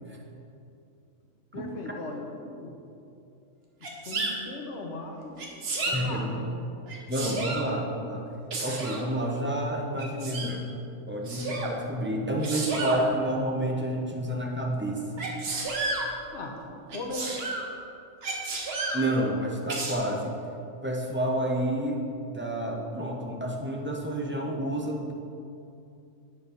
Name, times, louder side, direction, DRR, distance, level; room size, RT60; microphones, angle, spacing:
voice 1, 1.5-2.8 4.0-5.4 5.9-6.5 16.3-16.6 16.9-17.4, left 2 dB, 60° left, 2 dB, 1.2 m, -38 dB
Sneeze, 3.8-4.3 5.4-6.0 6.9-7.7 8.5-9.0 10.0-10.5 11.2-11.7 12.4-13.0 15.2-16.1 16.9-17.6 18.2-19.0 19.7-19.9, right 3 dB, 50° right, 1.1 m, -31 dB
voice 2, 5.9-6.4 7.1-8.2 8.6-10.6 11.1-15.3 18.9-20.3 20.8-22.0 22.3-25.1, right 1 dB, 15° right, -1 dB, 0.4 m, -29 dB
8.3 x 4.6 x 5.1 m, 2.7 s
omnidirectional pair, 1.4 m